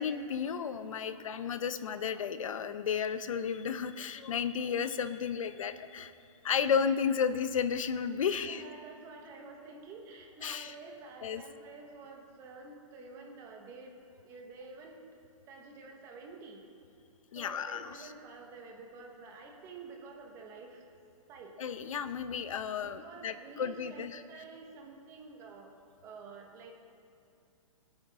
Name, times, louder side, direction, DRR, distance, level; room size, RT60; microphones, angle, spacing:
voice 1, 0.0-6.1 6.4-8.6 10.4-10.7 11.2-11.4 17.3-18.1 21.6-24.2, left 7 dB, 70° left, 11 dB, 0.7 m, -33 dB
voice 2, 8.3-13.9 14.2-15.0 15.5-16.6 17.3-20.8 21.3-21.6 22.8-25.7 26.0-26.7, right 4 dB, 15° right, 1 dB, 1.2 m, -49 dB
20.0 x 9.0 x 3.6 m, 2.6 s
hypercardioid pair, 170°, 18 cm